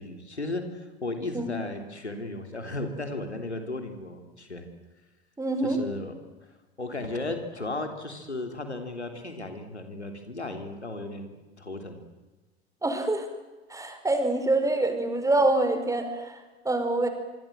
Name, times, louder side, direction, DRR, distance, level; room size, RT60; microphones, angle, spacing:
voice 1, 0.0-4.6 5.6-6.1 6.8-11.3 11.6-12.0, left 2 dB, 85° left, 6 dB, 3.3 m, -35 dB
voice 2, 5.4-5.8 12.8-13.3 13.7-17.1, right 2 dB, 10° right, 7 dB, 5.0 m, -25 dB
25.5 x 25.0 x 7.7 m, 1.2 s
figure-of-eight pair, 80°, 33 cm